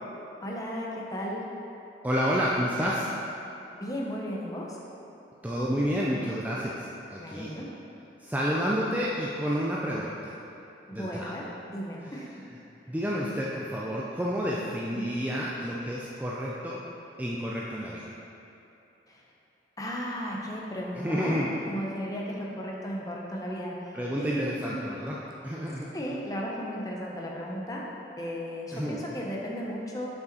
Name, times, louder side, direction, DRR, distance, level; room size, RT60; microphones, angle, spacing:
voice 1, 0.4-1.5 3.7-4.8 7.2-7.7 10.9-12.4 14.9-15.1 19.1-19.2 19.8-21.3 21.7-24.8 25.9-27.8 28.2-30.1, equal, 20° left, -3 dB, 0.8 m, -35 dB
voice 2, 2.0-3.1 5.4-7.5 8.2-10.4 10.9-11.3 12.0-12.2 12.9-16.8 17.2-18.1 20.9-21.5 23.9-25.2 25.4-25.9 28.7-29.0, equal, 10° right, -5 dB, 0.4 m, -30 dB
6.8 x 5.6 x 4.1 m, 2.8 s
head